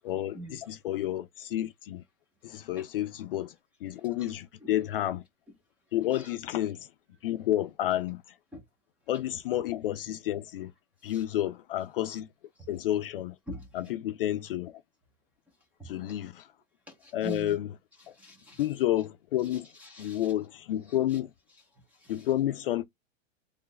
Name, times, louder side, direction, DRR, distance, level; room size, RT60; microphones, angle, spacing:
voice 1, 0.0-2.0 2.4-3.5 3.8-5.2 5.9-6.9 7.2-8.2 9.1-10.7 11.0-12.3 12.7-13.4 13.7-14.7 15.8-16.5 17.1-17.7 18.1-18.2 18.6-19.7 20.0-21.3 22.1-22.8, left 13 dB, 50° left, 0.4 m, -30 dB
voice 2, 2.5-2.9 4.2-4.3 4.6-4.9 6.1-6.4 8.5-8.6 11.0-11.2 12.6-12.7 13.5-13.9 15.8-15.9 16.9-17.6 18.0-18.7 19.4-20.3 20.9-21.2 21.5-22.3, right 1 dB, 5° right, 0.5 m, -45 dB
3.1 x 2.4 x 3.9 m
supercardioid pair, 165°, 38 cm